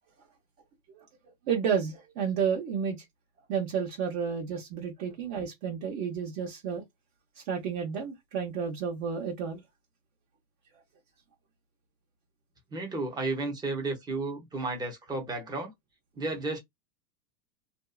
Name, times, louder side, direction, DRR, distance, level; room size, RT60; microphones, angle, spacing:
voice 1, 1.5-3.0 3.5-6.8 7.4-9.6, right 7 dB, 50° right, 1.0 m, -31 dB
voice 2, 12.7-15.7 16.2-16.6, right 3 dB, 10° right, 0.6 m, -33 dB
2.7 x 2.3 x 2.3 m
supercardioid pair, 130°, 49 cm